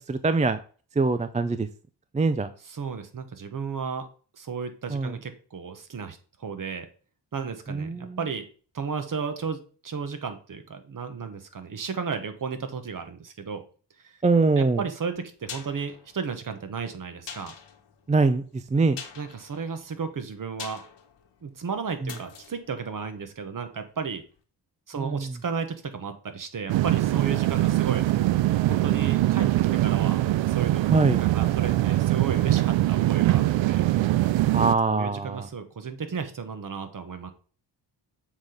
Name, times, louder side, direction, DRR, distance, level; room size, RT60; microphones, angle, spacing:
voice 1, 0.1-0.6 1.0-1.7 2.1-2.5 4.9-5.1 7.7-8.2 14.2-14.8 18.1-19.0 22.0-22.1 24.9-25.4 30.9-31.2 34.5-35.5, right 3 dB, 15° right, 11 dB, 0.4 m, -23 dB
voice 2, 2.7-4.1 4.3-6.9 7.3-8.4 8.7-13.6 14.0-14.2 14.6-17.5 19.2-20.8 21.4-24.2 24.9-28.0 28.7-30.2 30.5-33.9 34.6-37.3, right 5 dB, 45° right, 8 dB, 1.3 m, -34 dB
sound 1, 15.2-23.9 24.2-24.3, left 7 dB, 75° left, 1.6 m, -45 dB
sound 2, 26.7-34.7, right 15 dB, 80° right, 0.5 m, -22 dB
7.2 x 4.1 x 5.1 m, 0.40 s
cardioid pair, 85°, 44 cm